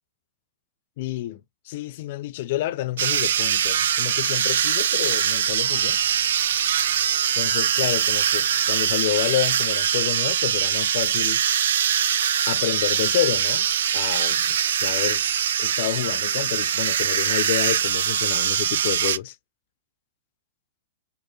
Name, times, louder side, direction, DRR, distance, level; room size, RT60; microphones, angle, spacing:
voice 1, 1.0-1.4 1.7-6.0 7.3-11.4 12.5-13.7 13.9-15.2 15.6-19.4, left 14 dB, 45° left, 0.4 m, -29 dB
sound 1, 3.0-19.2, right 9 dB, 80° right, 0.4 m, -23 dB
4.5 x 2.5 x 3.1 m
supercardioid pair, 170°, 0 cm